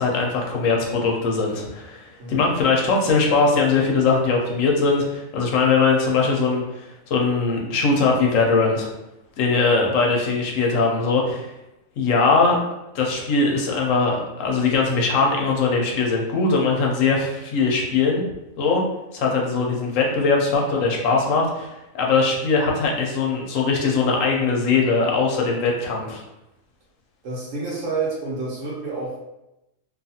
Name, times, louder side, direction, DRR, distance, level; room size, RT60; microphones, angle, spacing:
voice 1, 0.0-8.9 9.4-11.5 12.0-12.6 12.9-18.2 18.6-18.8 19.1-21.7 21.9-26.2, left 4 dB, 80° left, -1 dB, 1.0 m, -21 dB
voice 2, 19.5-19.8 27.2-29.2, right 3 dB, 70° right, -4 dB, 1.2 m, -29 dB
2.6 x 2.4 x 2.7 m, 0.92 s
omnidirectional pair, 1.4 m